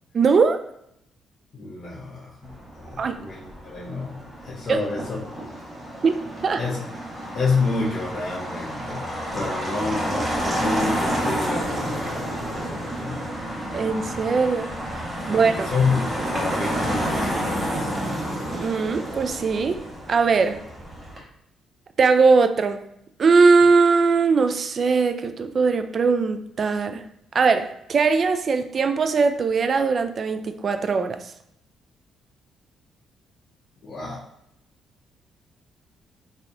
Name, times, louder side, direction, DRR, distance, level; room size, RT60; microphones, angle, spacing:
voice 1, 0.1-0.6 3.0-3.2 4.7-4.8 6.0-6.1 6.4-6.6 13.7-15.7 18.5-19.8 20.1-20.6 22.0-22.8 23.2-27.0 27.3-31.3, right 4 dB, 45° right, 8 dB, 0.3 m, -20 dB
voice 2, 1.5-2.5 2.8-5.4 6.6-6.8 7.3-9.0 9.3-13.2 15.2-18.1 33.8-34.2, left 4 dB, 45° left, -8 dB, 1.0 m, -29 dB
Motor vehicle (road), 2.4-21.2, equal, 25° right, 1.2 m, -30 dB
3.8 x 2.8 x 2.6 m, 0.75 s
cardioid pair, 90°, 0 cm